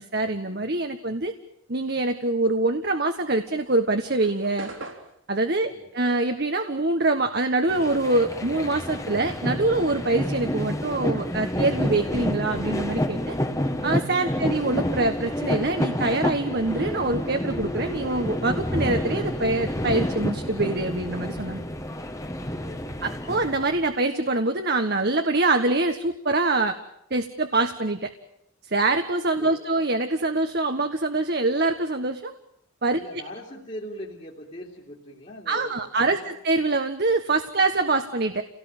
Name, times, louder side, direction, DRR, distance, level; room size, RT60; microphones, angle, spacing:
voice 1, 0.0-1.3 1.7-4.7 5.3-13.3 13.8-21.6 23.0-26.8 27.1-28.1 28.7-32.3 32.8-33.0 35.5-38.4, right 2 dB, 50° right, 5 dB, 1.4 m, -24 dB
sound 1, 3.2-7.9 8.2-10.2, right 2 dB, 75° right, 3.9 m, -44 dB
sound 2, 7.7-23.9, equal, 15° left, 1.5 m, -29 dB
voice 2, 22.6-23.0 29.4-29.6 32.9-36.2, equal, 35° left, -4 dB, 3.1 m, -41 dB
29.5 x 18.5 x 9.1 m, 0.74 s
head